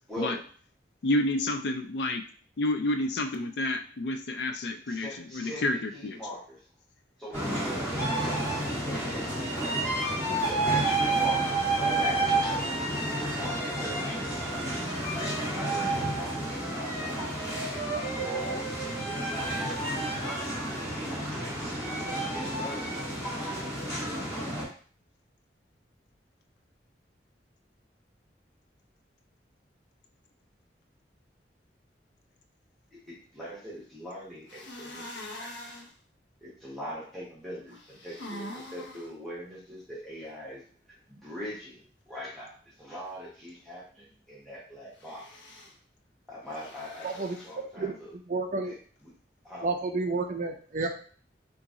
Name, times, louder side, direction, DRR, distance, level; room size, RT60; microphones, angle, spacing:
voice 1, 1.0-2.2 2.6-6.2, left 1 dB, 70° left, 8 dB, 0.4 m, -29 dB
voice 2, 4.9-6.6 7.2-10.1 10.5-14.4 15.5-17.3 17.7-20.4 20.7-21.9 22.3-22.9 32.9-35.0 35.3-35.7 36.4-40.6 41.1-42.5 42.8-45.2 46.3-48.1 48.6-48.8 49.0-49.1 49.4-49.7, equal, ahead, -8 dB, 1.1 m, -42 dB
sound 1, 7.3-24.6, right 2 dB, 15° left, 1.4 m, -30 dB
sound 2, 34.5-35.9 37.7-39.1 45.0-45.7 46.5-47.5, left 1 dB, 90° left, 0.8 m, -44 dB
voice 3, 47.0-47.4 47.8-47.9 48.3-48.7 49.6-50.9, right 3 dB, 45° right, 2 dB, 0.4 m, -30 dB
2.9 x 2.6 x 3.6 m, 0.43 s
head